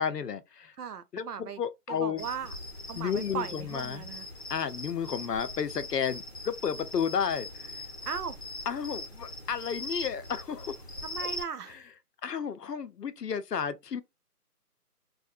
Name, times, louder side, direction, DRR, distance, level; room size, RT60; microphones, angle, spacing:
voice 1, 0.0-0.7 1.1-2.3 2.9-4.1 4.5-7.8 8.7-10.8 12.2-14.0, left 7 dB, 80° left, 0.6 m, -32 dB
voice 2, 0.8-1.6 1.9-2.6 2.9-4.3 8.0-8.4 11.0-11.8, right 7 dB, 70° right, 0.6 m, -37 dB
sound 1, 2.2-11.4, left 2 dB, 40° left, 0.6 m, -41 dB
2.5 x 2.0 x 2.6 m
figure-of-eight pair, 165°, 48 cm